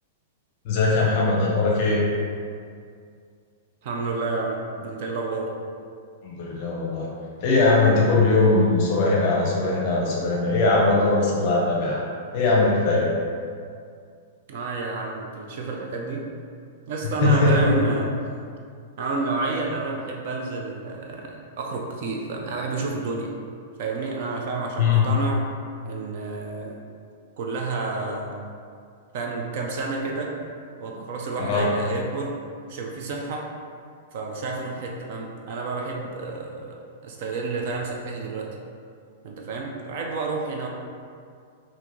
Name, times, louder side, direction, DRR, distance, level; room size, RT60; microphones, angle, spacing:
voice 1, 0.6-2.0 6.2-7.1 7.4-12.0 12.3-13.1 17.2-17.8 24.8-25.1 31.4-31.7, left 3 dB, 35° left, -4 dB, 0.7 m, -20 dB
voice 2, 3.8-5.5 14.5-16.2 16.9-18.1 19.0-23.3 23.8-25.4 25.8-26.8 27.4-28.3 29.1-30.3 30.8-32.3 32.7-33.5 34.1-36.8 37.0-38.5 39.2-40.7, right 3 dB, 40° right, 0 dB, 0.4 m, -30 dB
3.7 x 2.6 x 2.9 m, 2.3 s
supercardioid pair, 180°, 0 cm